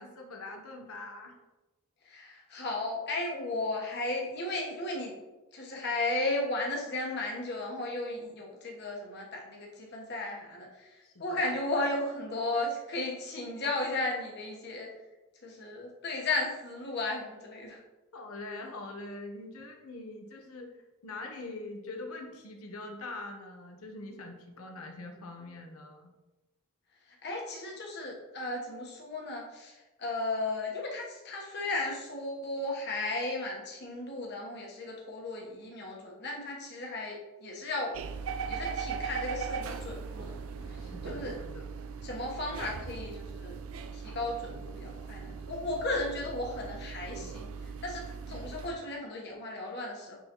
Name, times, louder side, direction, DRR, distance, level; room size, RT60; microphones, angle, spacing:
voice 1, 0.0-1.4 11.0-11.6 18.1-20.7 21.0-26.1 40.7-41.7, left 2 dB, 75° left, 3 dB, 1.0 m, -43 dB
voice 2, 2.1-5.1 5.5-10.9 11.2-14.9 15.4-17.8 27.2-29.7 30.0-37.9 38.5-40.4 41.0-41.3 42.0-43.6 43.9-47.5 47.8-50.2, left 2 dB, 50° left, -2 dB, 1.3 m, -35 dB
sound 1, 37.9-48.7, right 5 dB, 70° right, 0.4 m, -39 dB
9.4 x 4.0 x 3.0 m, 1.1 s
head